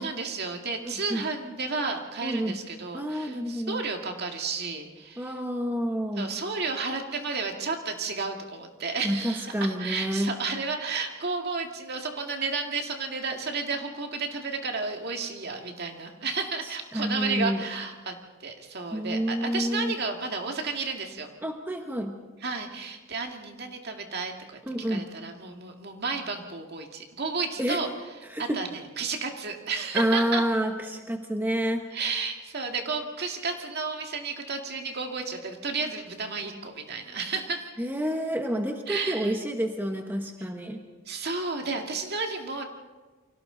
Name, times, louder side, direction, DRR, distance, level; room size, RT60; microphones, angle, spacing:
voice 1, 0.0-5.4 6.2-21.3 22.4-24.6 24.9-27.9 28.4-30.4 31.9-37.7 38.9-39.3 41.1-42.6, right 4 dB, 50° right, 3 dB, 2.1 m, -32 dB
voice 2, 2.2-2.6 2.9-3.8 5.2-6.3 9.0-10.4 16.6-17.7 18.9-19.9 21.4-22.2 24.6-25.1 27.6-27.8 28.2-28.6 29.9-31.8 37.8-40.8, equal, 10° right, 3 dB, 1.1 m, -29 dB
29.5 x 24.0 x 3.9 m, 1.3 s
head